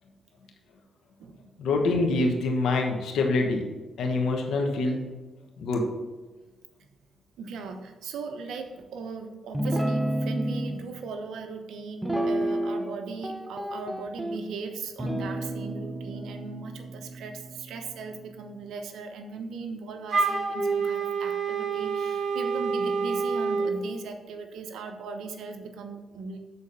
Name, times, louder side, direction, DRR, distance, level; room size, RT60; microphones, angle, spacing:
voice 1, 1.6-3.6 4.0-5.1 5.6-5.9, left 2 dB, 75° left, 1 dB, 1.1 m, -25 dB
voice 2, 7.4-26.4, right 4 dB, 85° right, 6 dB, 0.8 m, -38 dB
Guitar, 9.5-10.8 12.0-12.9 13.2-14.4 15.0-18.5, right 1 dB, 5° right, 0.9 m, -31 dB
Wind instrument woodwind instrument, 20.1-23.8, right 5 dB, 45° right, 1.8 m, -27 dB
7.1 x 4.1 x 6.5 m, 1.2 s
cardioid pair, 80°, 0 cm